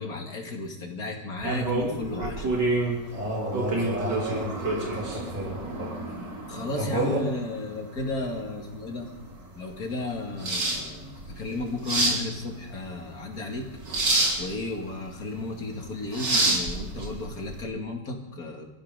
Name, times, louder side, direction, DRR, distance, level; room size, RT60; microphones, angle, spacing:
voice 1, 0.0-2.5 6.5-9.1 9.5-13.7 14.4-18.7, left 2 dB, 55° left, 2 dB, 2.7 m, -34 dB
sound 1, 1.4-17.6, right 2 dB, 80° right, 3.5 m, -29 dB
voice 2, 3.1-5.9 6.8-7.2, right 1 dB, 55° right, -4 dB, 4.5 m, -31 dB
25.5 x 14.5 x 3.8 m, 0.96 s
omnidirectional pair, 1.9 m